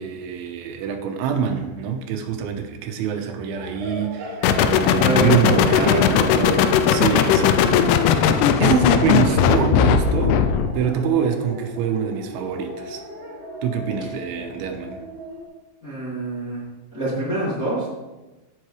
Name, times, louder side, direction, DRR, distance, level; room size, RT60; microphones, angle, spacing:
voice 1, 0.0-7.8 8.0-8.3 8.6-10.4 10.8-13.0 13.6-15.0, right 7 dB, 85° right, 4 dB, 3.3 m, -25 dB
sound 1, 3.5-15.4, equal, 55° right, 4.0 m, -36 dB
sound 2, 4.4-10.8, left 8 dB, 90° left, 3.2 m, -18 dB
voice 2, 4.9-6.3 15.8-16.6 16.9-17.9, right 1 dB, 30° left, -8 dB, 1.7 m, -25 dB
16.0 x 7.5 x 3.3 m, 1.1 s
omnidirectional pair, 5.5 m